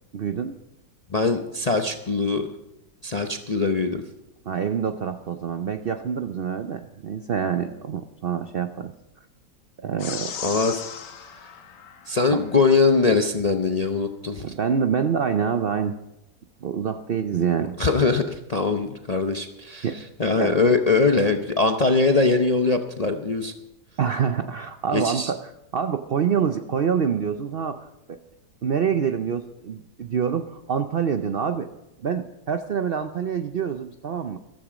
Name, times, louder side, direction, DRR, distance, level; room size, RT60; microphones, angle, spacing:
voice 1, 0.1-0.6 4.5-8.9 9.8-10.3 12.3-12.4 14.4-16.0 16.6-17.8 19.8-20.0 20.4-20.5 24.0-28.2 28.6-31.7 32.0-34.4, right 7 dB, 75° right, 9 dB, 0.5 m, -26 dB
voice 2, 1.1-2.5 3.0-4.0 10.4-10.7 12.1-14.4 17.8-19.9 20.2-23.5 24.9-25.3, left 3 dB, 45° left, 5 dB, 0.5 m, -22 dB
sound 1, 10.0-12.7, left 7 dB, 85° left, 1.7 m, -37 dB
14.0 x 13.5 x 5.0 m, 0.90 s
omnidirectional pair, 1.8 m